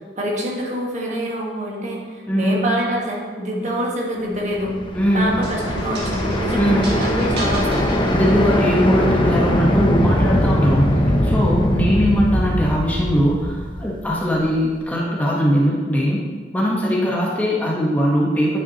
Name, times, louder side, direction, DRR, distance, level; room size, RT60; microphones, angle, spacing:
voice 1, 0.2-4.8 5.1-7.9, equal, 40° right, -2 dB, 1.3 m, -25 dB
sound 1, 4.5-14.5, left 1 dB, 30° left, 0.6 m, -21 dB
voice 2, 5.0-5.3 6.5-6.9 8.1-10.9 11.2-16.2 16.5-18.6, equal, 10° left, -4 dB, 1.0 m, -20 dB
sound 2, 5.4-8.8, right 1 dB, 65° right, 1.8 m, -35 dB
9.4 x 5.8 x 2.8 m, 1.5 s
head